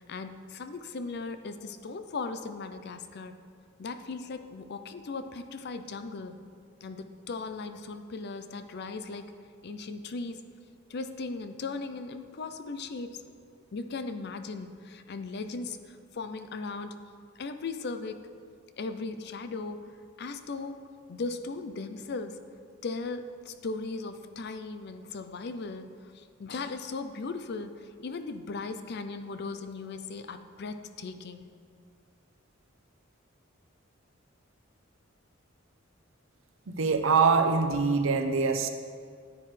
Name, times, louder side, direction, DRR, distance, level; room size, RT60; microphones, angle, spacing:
voice 1, 0.0-3.3 3.8-6.3 6.8-9.3 9.6-10.4 10.9-13.2 13.7-16.9 17.4-18.2 18.8-19.9 20.2-20.8 21.1-22.4 22.8-25.9 26.1-31.4, left 3 dB, 55° left, 9 dB, 0.5 m, -37 dB
voice 2, 36.7-38.7, right 4 dB, 80° right, 7 dB, 0.7 m, -24 dB
9.8 x 9.5 x 3.3 m, 2.2 s
head